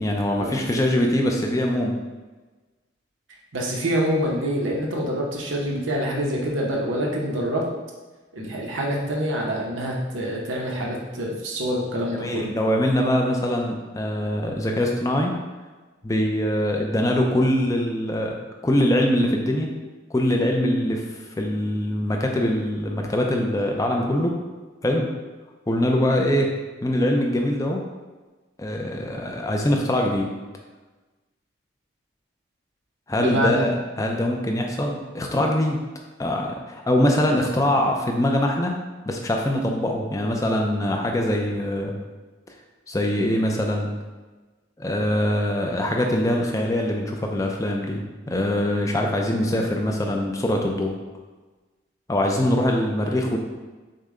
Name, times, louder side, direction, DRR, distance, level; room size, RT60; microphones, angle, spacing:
voice 1, 0.0-1.9 12.1-15.4 16.0-18.3 18.6-19.7 20.1-21.0 21.4-24.3 24.8-25.1 25.7-26.5 26.8-27.8 28.6-30.3 33.1-35.8 36.2-38.7 39.1-41.9 42.9-43.9 44.8-50.9 52.1-53.4, left 1 dB, 15° left, 1 dB, 0.4 m, -23 dB
voice 2, 3.5-7.6 8.3-12.5 33.2-33.6, equal, 80° right, -2 dB, 0.8 m, -26 dB
6.4 x 2.2 x 3.7 m, 1.3 s
head